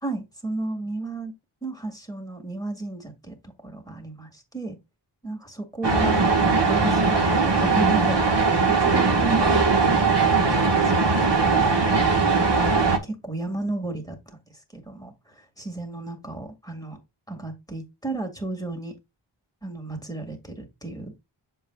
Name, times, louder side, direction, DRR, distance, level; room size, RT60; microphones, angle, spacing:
voice 1, 0.0-1.3 1.6-3.4 3.6-4.8 5.2-8.5 8.8-10.0 10.3-11.3 11.6-11.7 12.0-12.1 12.5-12.8 13.0-14.4 14.7-17.0 17.3-18.9 19.6-21.1, right 2 dB, 10° left, 1.7 m, -33 dB
sound 1, 5.8-13.0, right 4 dB, 55° right, 1.4 m, -20 dB
7.1 x 5.9 x 2.2 m
wide cardioid pair, 55°, 50 cm